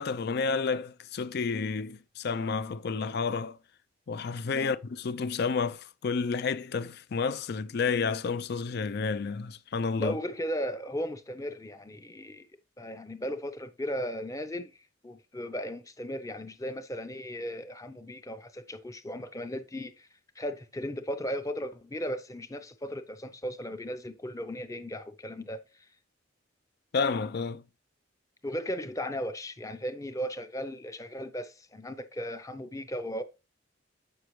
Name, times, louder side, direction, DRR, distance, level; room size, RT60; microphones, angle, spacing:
voice 1, 0.0-3.6 4.1-10.2 26.9-27.6, left 5 dB, 55° left, 0.4 m, -30 dB
voice 2, 10.0-12.5 12.8-14.7 15.0-20.1 20.4-25.6 28.4-33.2, equal, 15° left, 0.6 m, -36 dB
7.8 x 6.4 x 3.1 m
head